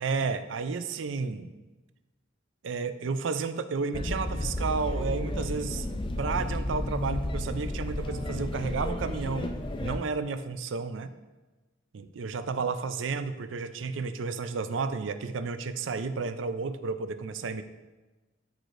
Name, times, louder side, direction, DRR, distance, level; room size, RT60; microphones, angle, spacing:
voice 1, 0.0-1.5 2.6-5.9 6.2-11.1 11.9-17.6, right 4 dB, 75° right, 11 dB, 0.5 m, -32 dB
sound 1, 3.9-10.0, left 1 dB, 25° left, 0.5 m, -32 dB
13.0 x 4.9 x 2.6 m, 1.2 s
head